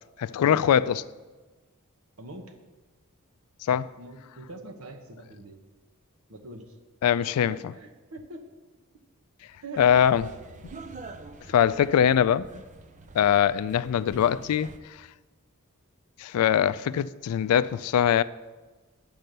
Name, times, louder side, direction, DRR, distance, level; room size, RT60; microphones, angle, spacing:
voice 1, 0.2-1.0 3.7-3.9 7.0-7.6 9.8-10.3 11.5-12.5 13.2-14.7 16.2-18.2, left 9 dB, 85° left, 0.3 m, -22 dB
voice 2, 2.2-2.5 4.0-5.6 6.3-6.7 7.5-8.5 9.6-9.9 10.2-10.3 11.4-11.6, right 2 dB, 70° right, 1.1 m, -43 dB
sound 1, 9.7-14.8, right 3 dB, 35° right, 0.5 m, -46 dB
9.1 x 5.5 x 6.6 m
head